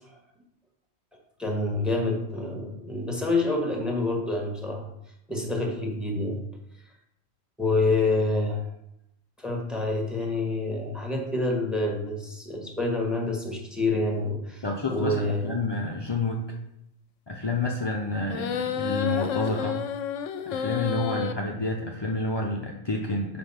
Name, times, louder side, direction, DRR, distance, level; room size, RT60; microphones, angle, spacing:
voice 1, 1.4-4.9 5.3-6.4 7.6-8.6 9.4-14.6 14.9-15.5, left 2 dB, ahead, 0 dB, 1.4 m, -27 dB
voice 2, 14.6-16.5 17.3-19.8 20.5-23.4, left 2 dB, 35° left, -1 dB, 0.4 m, -29 dB
sound 1, 18.3-21.3, left 8 dB, 75° left, 0.9 m, -30 dB
5.3 x 5.0 x 5.7 m, 0.80 s
omnidirectional pair, 1.3 m